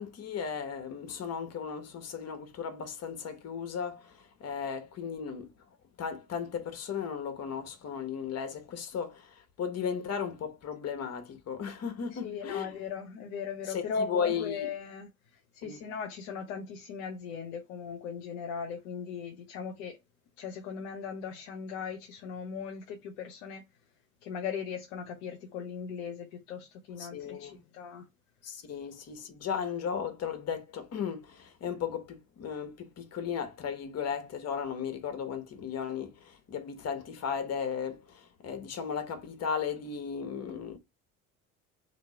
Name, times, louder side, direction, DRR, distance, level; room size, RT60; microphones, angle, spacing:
voice 1, 0.0-5.5 6.0-12.7 13.7-14.7 15.6-15.8 27.0-27.6 28.4-40.8, left 7 dB, 40° left, 1.1 m, -35 dB
voice 2, 12.1-15.1 15.5-20.0 20.4-23.6 24.2-28.1, left 6 dB, 70° left, 0.8 m, -38 dB
2.9 x 2.8 x 4.3 m
figure-of-eight pair, 55°, 40 cm